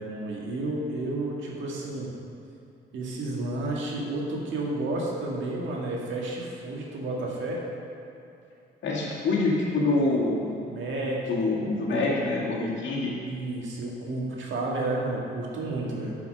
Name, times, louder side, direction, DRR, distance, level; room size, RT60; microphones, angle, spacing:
voice 1, 0.0-2.1 2.9-7.6 10.7-11.5 11.9-12.0 13.2-16.1, right 2 dB, 75° right, -3 dB, 1.8 m, -31 dB
voice 2, 8.8-10.6 11.3-13.2, left 2 dB, 70° left, -5 dB, 2.1 m, -26 dB
8.3 x 5.8 x 5.2 m, 2.7 s
cardioid pair, 90°, 20 cm